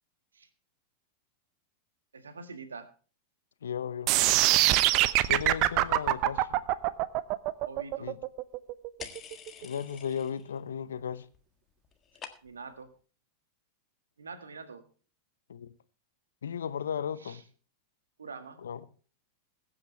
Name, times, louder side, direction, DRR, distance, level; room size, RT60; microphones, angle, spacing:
voice 1, 2.1-2.9 7.6-8.1 12.4-12.9 14.2-14.9 17.2-17.4 18.2-18.6, right 4 dB, 70° right, 1.8 m, -44 dB
voice 2, 3.6-4.1 5.3-6.6 8.0-8.2 9.6-11.3 15.5-15.7 16.4-17.4 18.6-18.8, left 8 dB, 65° left, 0.9 m, -35 dB
sound 1, 4.1-10.1, right 16 dB, 40° right, 0.7 m, -24 dB
sound 2, 9.0-10.6 10.9-11.4 11.7-12.8, left 7 dB, 25° left, 1.6 m, -47 dB
21.5 x 8.7 x 3.3 m
figure-of-eight pair, 90°, 0 cm